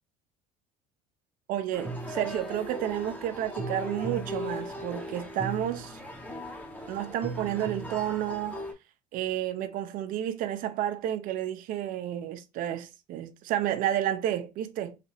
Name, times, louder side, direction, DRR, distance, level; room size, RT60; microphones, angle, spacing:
voice 1, 1.5-6.0 6.9-8.6 9.1-15.0, right 11 dB, 60° right, 0.6 m, -31 dB
sound 1, 1.7-8.7, equal, 10° left, 0.8 m, -37 dB
3.3 x 2.9 x 2.7 m
cardioid pair, 115°, 16 cm